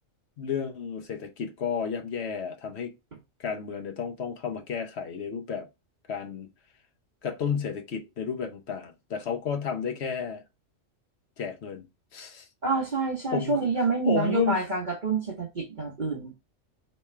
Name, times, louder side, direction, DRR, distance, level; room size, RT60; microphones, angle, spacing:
voice 1, 0.4-2.9 3.4-5.7 6.1-6.5 7.2-10.4 11.4-11.9 12.1-12.5 13.3-13.6 14.0-14.6, left 6 dB, 60° left, 1.0 m, -31 dB
voice 2, 12.6-16.3, right 4 dB, 40° right, 1.0 m, -27 dB
3.5 x 3.3 x 4.3 m
omnidirectional pair, 1.3 m